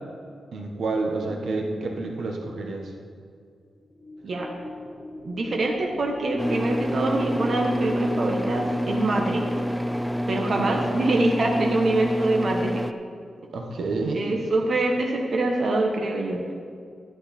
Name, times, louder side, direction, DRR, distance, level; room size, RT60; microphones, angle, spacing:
voice 1, 0.5-2.9 10.6-10.8 13.5-14.2, right 3 dB, 65° right, 2 dB, 1.3 m, -29 dB
sound 1, 3.8-12.2, left 1 dB, 15° left, 2.8 m, -38 dB
voice 2, 5.2-9.6 10.3-12.8 14.1-16.4, right 2 dB, 45° right, 1 dB, 1.2 m, -25 dB
sound 2, 6.4-12.9, equal, ahead, 0.4 m, -28 dB
12.5 x 11.0 x 4.3 m, 2.2 s
wide cardioid pair, 145°, 0 cm